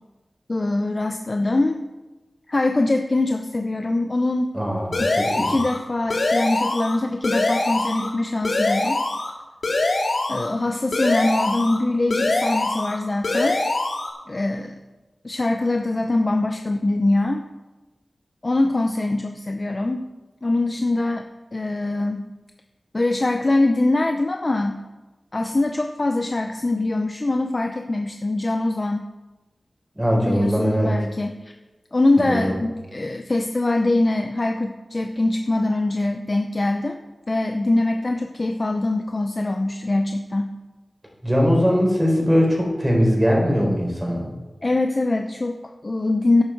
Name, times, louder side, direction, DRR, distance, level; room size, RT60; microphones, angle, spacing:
voice 1, 0.5-1.8 2.5-4.5 5.0-5.1 5.4-9.0 10.3-13.6 14.3-14.8 15.2-17.4 18.4-20.1 20.4-22.2 22.9-24.8 25.3-29.1 30.2-31.5 31.9-37.0 37.3-40.5 44.6-46.4, left 2 dB, 40° left, 5 dB, 0.8 m, -23 dB
voice 2, 4.5-4.9 5.4-5.5 30.0-30.9 32.2-32.5 41.2-44.2, equal, 10° right, -1 dB, 4.7 m, -20 dB
sound 1, 4.9-5.8 6.1-7.0 7.2-8.1 8.4-9.3 9.6-10.5 10.9-11.8 12.1-13.0 13.2-14.1, left 2 dB, 70° left, 2.6 m, -23 dB
14.0 x 11.5 x 4.7 m, 1.2 s
wide cardioid pair, 80°, 0 cm